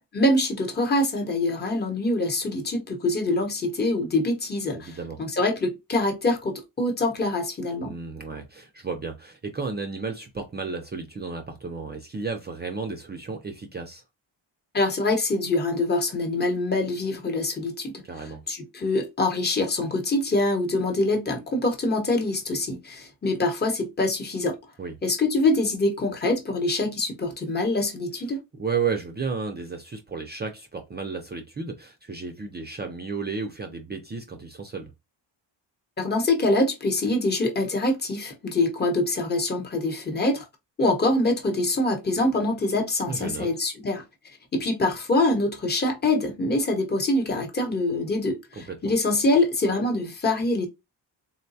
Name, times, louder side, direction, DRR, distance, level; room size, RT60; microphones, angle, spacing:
voice 1, 0.1-8.0 14.7-18.0 18.5-24.6 25.0-28.4 36.0-40.5 40.8-44.0 44.5-50.7, left 2 dB, 20° left, 0.9 m, -24 dB
voice 2, 4.7-5.2 7.8-14.0 18.0-18.4 24.8-25.0 28.6-34.9 43.1-43.5 48.6-48.9, right 5 dB, 25° right, 0.4 m, -33 dB
3.9 x 2.2 x 2.6 m
cardioid pair, 135°, 46 cm